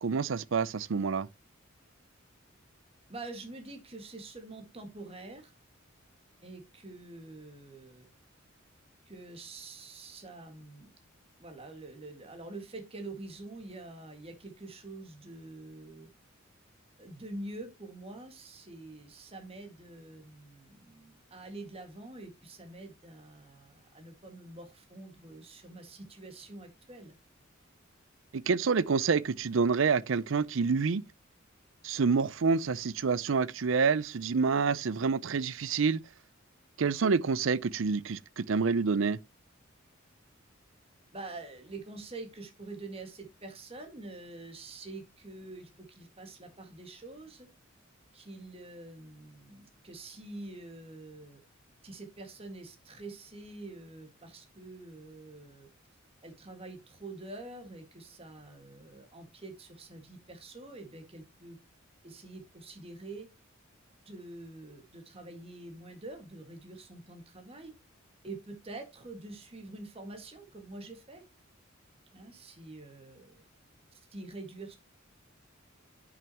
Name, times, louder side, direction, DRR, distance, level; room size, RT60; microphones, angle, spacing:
voice 1, 0.0-1.3 28.3-31.0 31.8-36.0 36.8-39.2, right 5 dB, 65° right, 0.5 m, -27 dB
voice 2, 3.1-5.5 6.4-8.1 9.1-10.9 11.4-16.1 17.0-27.2 41.1-47.5 48.1-51.4 51.8-55.7 56.2-61.6 62.0-63.3 64.1-67.7 68.2-71.2 72.1-73.4 73.9-74.8, right 2 dB, 30° right, 1.9 m, -46 dB
10.5 x 6.0 x 2.9 m
head